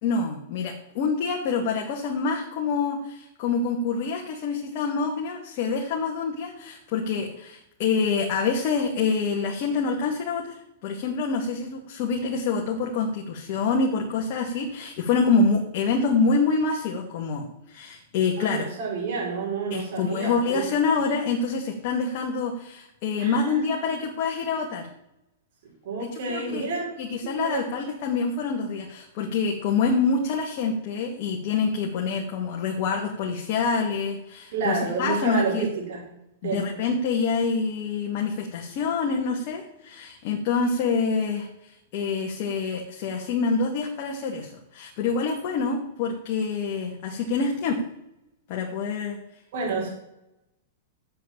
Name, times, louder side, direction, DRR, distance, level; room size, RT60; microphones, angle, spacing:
voice 1, 0.0-10.5 10.8-18.7 19.7-24.9 26.0-26.7 27.0-35.7 36.4-47.8 48.5-49.2, left 4 dB, 50° left, 0 dB, 2.2 m, -26 dB
voice 2, 18.4-20.6 20.9-21.0 23.2-23.9 25.8-26.8 27.2-27.6 34.5-36.0 36.4-36.7 49.5-49.9, right 4 dB, 60° right, -2 dB, 5.0 m, -29 dB
8.3 x 7.8 x 8.8 m, 0.85 s
hypercardioid pair, 120°, 0 cm